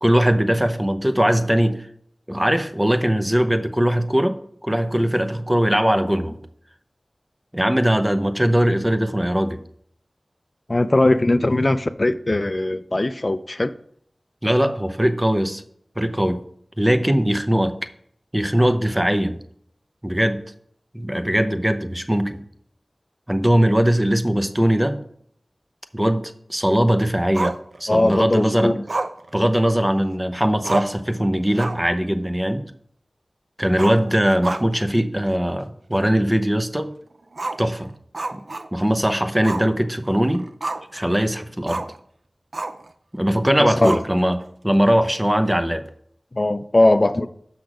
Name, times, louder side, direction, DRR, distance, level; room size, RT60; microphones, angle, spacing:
voice 1, 0.0-1.9 2.3-4.4 4.6-6.4 7.5-9.6 14.4-15.6 16.0-16.4 16.8-17.7 18.3-19.4 20.0-20.4 20.9-22.4 23.3-25.0 25.9-26.2 26.5-27.5 27.8-28.7 29.3-32.6 33.6-36.9 37.6-37.9 38.3-38.4 38.7-40.4 40.9-41.8 43.1-44.4 44.6-45.8, equal, 15° right, 8 dB, 0.8 m, -20 dB
voice 2, 10.7-13.7 27.9-28.8 43.6-44.0 46.3-47.3, left 2 dB, 45° left, 11 dB, 0.4 m, -19 dB
Growling, 27.3-28.2 28.9-30.1 30.4-30.5 30.6-31.1 31.5-31.9 32.3-32.4 33.7-34.9 35.3-35.4 35.9-36.0 37.3-39.0 39.4-39.7 40.1-41.0 41.7-42.0 42.5-42.9 43.8-44.4, right 2 dB, 75° right, 0.4 m, -29 dB
6.3 x 5.9 x 5.0 m, 0.66 s
wide cardioid pair, 40°, 0 cm